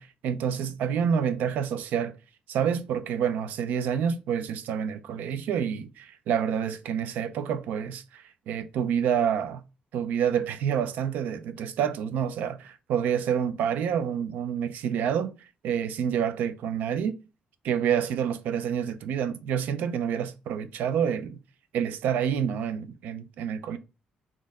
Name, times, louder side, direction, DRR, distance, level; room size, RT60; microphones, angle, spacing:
voice 1, 0.0-2.1 2.5-9.6 9.9-15.3 15.6-17.2 17.6-21.4 21.7-23.8, right 8 dB, 90° right, 0.5 m, -28 dB
4.2 x 3.1 x 3.6 m
cardioid pair, 145°, 3 cm